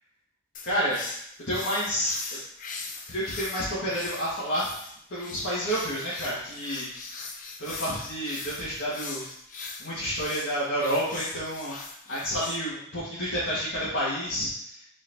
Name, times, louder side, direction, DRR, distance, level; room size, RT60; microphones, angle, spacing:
sound 1, 0.5-12.6, left 4 dB, 45° left, 0.5 m, -40 dB
voice 1, 0.6-1.0 1.5-2.4 3.1-4.7 5.1-6.9 7.6-9.2 9.8-11.8 12.1-14.5, equal, 70° left, -11 dB, 1.5 m, -29 dB
4.3 x 4.2 x 2.7 m, 0.69 s
head